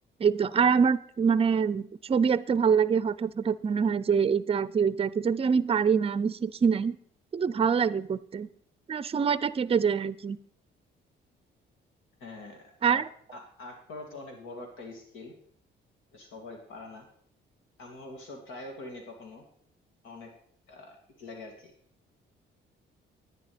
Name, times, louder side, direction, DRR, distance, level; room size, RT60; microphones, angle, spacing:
voice 1, 0.2-7.0 7.3-8.5 8.9-10.4 12.8-13.0, right 6 dB, 30° right, 18 dB, 0.5 m, -25 dB
voice 2, 12.2-13.0 13.3-15.3 16.1-17.1 17.8-19.4 20.0-20.3 20.7-21.7, left 2 dB, 85° left, 3 dB, 2.7 m, -44 dB
11.0 x 9.5 x 5.1 m, 0.62 s
cardioid pair, 90°, 20 cm